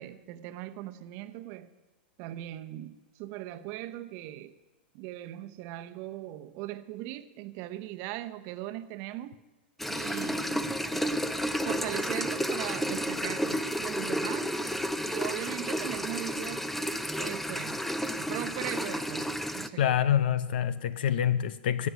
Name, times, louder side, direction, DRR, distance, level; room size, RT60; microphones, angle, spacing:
voice 1, 0.0-1.7 2.2-4.6 4.9-9.4 9.9-11.2 11.6-16.7 17.2-17.8 18.2-20.2, right 14 dB, 50° right, 0.9 m, -39 dB
sound 1, 9.8-19.7, equal, 5° left, 0.7 m, -31 dB
voice 2, 19.8-21.9, left 10 dB, 70° left, 0.7 m, -26 dB
13.5 x 7.8 x 9.4 m
hypercardioid pair, 110°, 6 cm